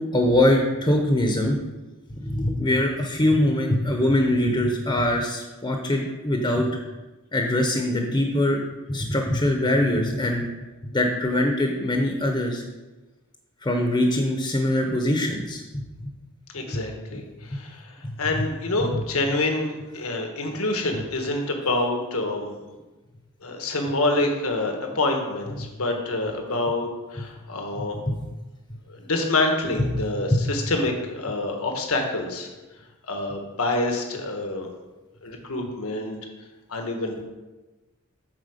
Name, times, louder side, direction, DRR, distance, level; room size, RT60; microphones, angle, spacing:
voice 1, 0.0-1.6 2.2-6.7 7.3-8.6 8.9-10.5 10.9-12.6 13.6-15.6 16.0-16.1 16.7-16.8 28.1-28.2 29.8-30.0 30.3-30.4, left 1 dB, 20° left, 2 dB, 0.9 m, -22 dB
voice 2, 16.5-22.6 23.4-28.0 28.9-32.5 33.1-34.7 35.2-36.2 36.7-37.2, left 2 dB, 80° left, 3 dB, 1.4 m, -27 dB
9.1 x 4.5 x 6.5 m, 1.2 s
head